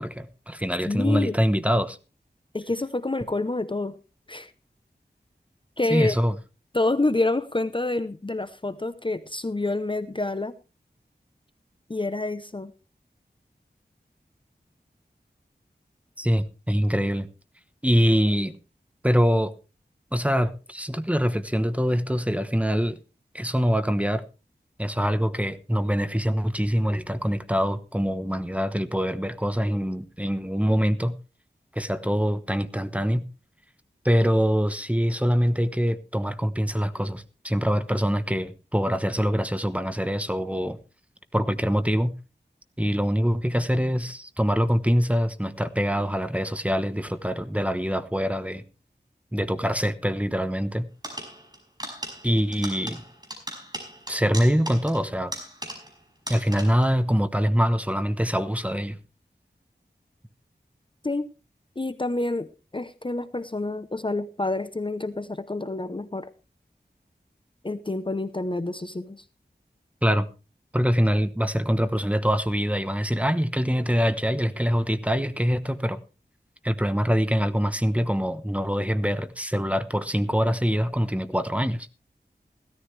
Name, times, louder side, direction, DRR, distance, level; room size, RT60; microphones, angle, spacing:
voice 1, 0.0-2.0 5.9-6.3 16.2-17.3 17.8-18.5 19.0-19.5 20.1-23.0 23.3-24.2 24.8-31.1 31.7-33.2 34.0-40.8 41.3-42.1 42.8-48.6 49.3-50.9 52.2-53.0 54.1-55.3 56.3-59.0 70.0-70.3 70.7-76.0 76.6-81.9, equal, 5° right, 1.0 m, -24 dB
voice 2, 0.9-1.4 2.5-4.0 4.3-4.5 5.8-6.2 6.7-10.5 11.9-12.7 61.0-61.3 61.8-66.3 67.6-69.2, left 2 dB, 30° left, 0.7 m, -28 dB
sound 1, 51.0-56.0 56.3-56.9, right 1 dB, 25° right, 5.4 m, -38 dB
16.5 x 13.5 x 3.3 m
wide cardioid pair, 60°, 18 cm